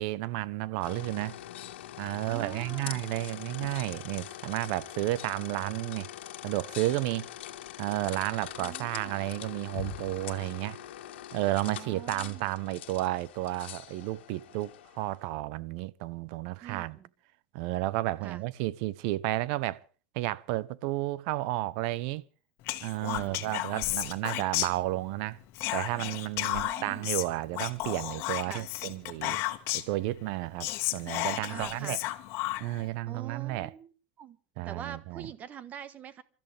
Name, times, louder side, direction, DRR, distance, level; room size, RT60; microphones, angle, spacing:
voice 1, 0.0-1.4 2.0-6.1 6.4-7.3 7.8-10.8 11.3-17.0 17.5-19.8 20.1-22.2 22.8-25.4 25.7-29.4 29.7-32.0 32.6-33.7 34.6-35.3, right 17 dB, 55° right, 0.9 m, -32 dB
sound 1, 0.8-15.2, left 12 dB, 85° left, 1.7 m, -43 dB
voice 2, 2.3-3.0 8.6-9.2 11.6-12.6 16.6-17.1 18.2-18.4 23.0-23.5 26.4-27.1 28.5-28.7 31.5-32.0 33.1-34.4 34.6-36.2, right 9 dB, 25° right, 1.3 m, -45 dB
Whispering, 22.7-25.2 25.5-30.0 30.3-30.4 30.6-32.9, left 18 dB, 45° left, 1.6 m, -33 dB
28.5 x 13.5 x 3.5 m
supercardioid pair, 150°, 6 cm